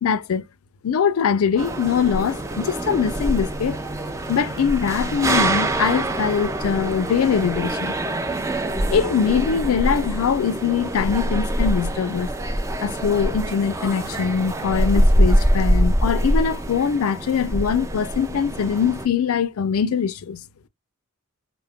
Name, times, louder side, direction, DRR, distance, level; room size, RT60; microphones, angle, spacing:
voice 1, 0.0-0.4 0.8-3.8 4.3-7.9 8.9-12.3 12.8-20.4, left 6 dB, 75° left, 0.4 m, -22 dB
sound 1, 1.6-19.1, right 1 dB, 15° right, 0.3 m, -24 dB
2.1 x 2.1 x 3.5 m
head